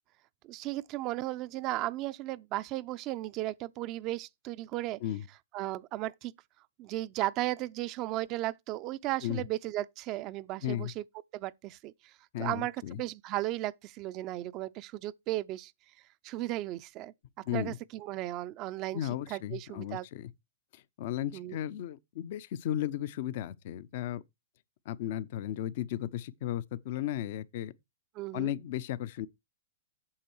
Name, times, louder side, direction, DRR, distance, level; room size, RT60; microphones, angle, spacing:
voice 1, 0.4-5.0 5.5-6.3 6.8-11.0 11.3-15.7 16.2-20.1 21.3-21.6 28.1-28.5, right 16 dB, 40° right, 0.5 m, -35 dB
voice 2, 12.3-13.0 17.5-17.8 18.9-20.3 20.7-24.2 24.9-27.7 28.3-29.3, left 12 dB, 55° left, 0.7 m, -35 dB
8.7 x 6.7 x 4.6 m
hypercardioid pair, 110°, 0 cm